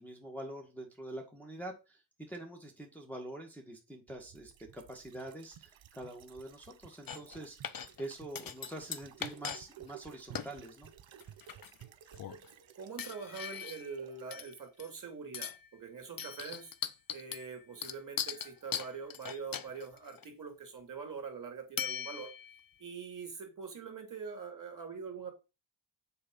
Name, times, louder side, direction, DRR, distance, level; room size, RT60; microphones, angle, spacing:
voice 1, 0.0-2.0 2.3-10.9, right 1 dB, 5° left, -1 dB, 1.7 m, -45 dB
sound 1, 4.1-14.4 14.7-14.8, right 10 dB, 65° right, 1.0 m, -55 dB
sound 2, 7.1-7.4 7.6-8.1 8.3-9.6 9.9-10.0 10.3-10.5 11.2-11.8 12.2-12.5 13.0-13.9 14.3-15.0 15.3-15.7 16.2-20.2 21.8-22.6, left 8 dB, 45° left, 0.7 m, -40 dB
voice 2, 12.5-16.7 17.1-22.3 22.8-25.3, right 5 dB, 40° right, 4 dB, 2.8 m, -44 dB
6.9 x 4.2 x 5.4 m, 0.29 s
cardioid pair, 80°, 49 cm